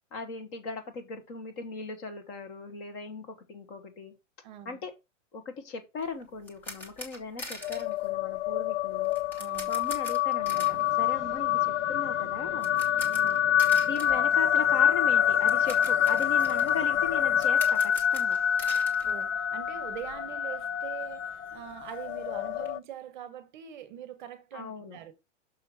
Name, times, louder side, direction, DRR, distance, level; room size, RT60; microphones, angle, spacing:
voice 1, 0.1-4.1 4.6-4.9 5.3-9.1 9.7-12.7 13.8-18.4 24.5-25.0, left 4 dB, 25° left, 0.9 m, -38 dB
voice 2, 4.4-4.8 9.4-9.7 13.0-13.5 19.0-25.1, right 10 dB, 40° right, 1.1 m, -43 dB
sound 1, 6.0-20.0 20.2-20.4 20.8-20.9 21.1-22.7, left 1 dB, 5° left, 0.6 m, -45 dB
sound 2, 7.6-22.8, left 9 dB, 70° left, 0.6 m, -26 dB
sound 3, 10.4-17.5, right 4 dB, 20° right, 2.0 m, -48 dB
6.4 x 5.3 x 4.7 m
supercardioid pair, 175°, 38 cm